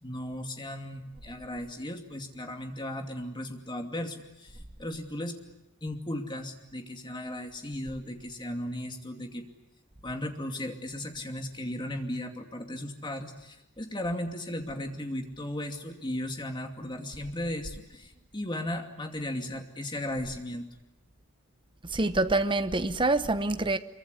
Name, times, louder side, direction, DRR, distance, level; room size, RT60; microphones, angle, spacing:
voice 1, 0.0-5.4 5.8-9.5 10.0-20.7, left 1 dB, 20° left, 2.6 m, -36 dB
voice 2, 21.8-23.8, right 2 dB, 20° right, 1.1 m, -26 dB
25.0 x 23.5 x 9.6 m
head